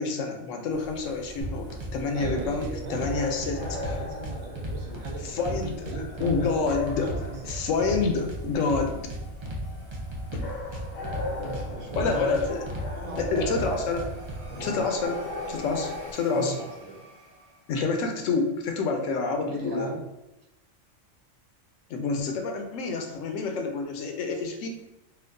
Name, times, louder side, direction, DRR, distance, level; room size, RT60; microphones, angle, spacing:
voice 1, 0.0-4.0 5.2-9.0 10.3-10.5 12.0-12.7 13.2-14.1 14.6-16.6 17.7-19.9 21.9-24.7, left 4 dB, 80° left, 4 dB, 0.9 m, -28 dB
sound 1, 0.7-16.1, left 2 dB, 50° left, 0.4 m, -39 dB
sound 2, 1.4-1.9 2.2-3.1 3.4-5.1 5.4-6.4 6.7-8.4 8.7-9.6 9.9-11.6 11.9-12.9 13.1-14.4, equal, 50° right, 0.3 m, -34 dB
voice 2, 2.1-6.5 7.0-7.5 11.4-12.3 12.9-13.9 14.5-14.9 16.3-17.0 19.5-20.0, right 3 dB, 75° right, -1 dB, 1.1 m, -38 dB
sound 3, 3.6-18.3, right 1 dB, 25° right, 1.0 m, -51 dB
4.3 x 2.2 x 2.6 m, 0.95 s
omnidirectional pair, 1.3 m